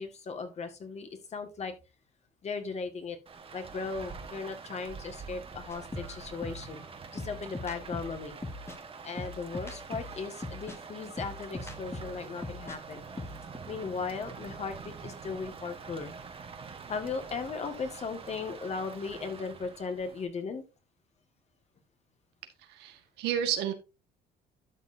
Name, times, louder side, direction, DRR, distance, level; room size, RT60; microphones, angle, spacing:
voice 1, 0.0-1.7 2.4-3.2 3.5-6.8 7.1-8.3 9.0-13.2 13.7-16.1 16.9-20.6, left 4 dB, 40° left, 7 dB, 2.0 m, -37 dB
Rain, 3.3-20.3, right 5 dB, 35° right, 1.4 m, -46 dB
sound 1, 5.7-12.8 13.1-13.6, left 2 dB, 15° left, 1.5 m, -41 dB
voice 2, 22.7-23.7, right 9 dB, 90° right, 6 dB, 1.8 m, -31 dB
12.0 x 6.6 x 2.8 m, 0.28 s
cardioid pair, 110°, 17 cm